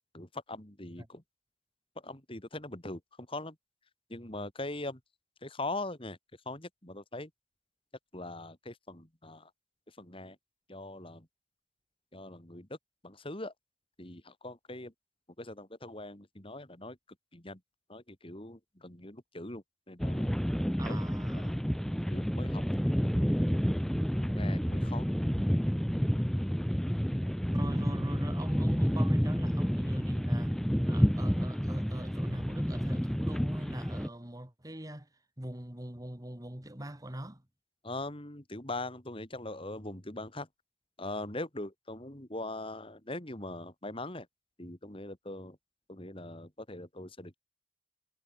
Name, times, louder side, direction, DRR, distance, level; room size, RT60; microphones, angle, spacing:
voice 1, 0.1-1.2 2.0-3.6 4.1-5.0 5.4-6.2 6.5-7.3 8.1-9.5 10.0-10.4 10.7-11.3 12.1-12.8 13.0-13.5 14.0-14.9 15.4-17.0 17.3-17.6 17.9-20.3 20.9-21.0 21.3-21.6 22.1-23.1 24.2-25.1 37.8-40.5 41.0-44.3 44.6-45.6 45.9-47.4, left 2 dB, 25° left, 2.8 m, -41 dB
sound 1, 20.0-34.1, equal, ahead, 0.7 m, -29 dB
voice 2, 20.8-21.6 27.5-30.6 30.9-35.1 35.4-37.4, right 1 dB, 20° right, 1.8 m, -42 dB
head